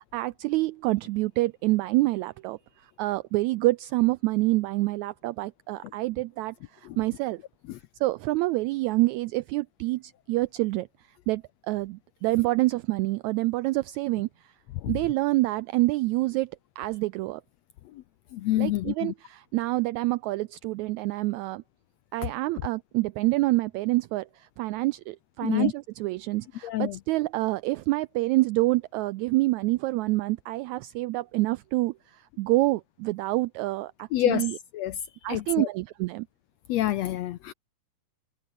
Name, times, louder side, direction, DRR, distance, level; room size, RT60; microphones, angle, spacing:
voice 1, 0.0-7.4 8.0-10.9 11.3-14.5 14.9-17.4 18.6-21.6 22.1-34.6 35.2-36.3, right 19 dB, 85° right, 1.6 m, -27 dB
voice 2, 18.3-19.1 25.4-25.7 26.6-27.0 34.1-34.5 34.7-35.0 35.3-35.7 36.7-37.5, left 14 dB, 75° left, 1.6 m, -27 dB
omnidirectional pair, 3.8 m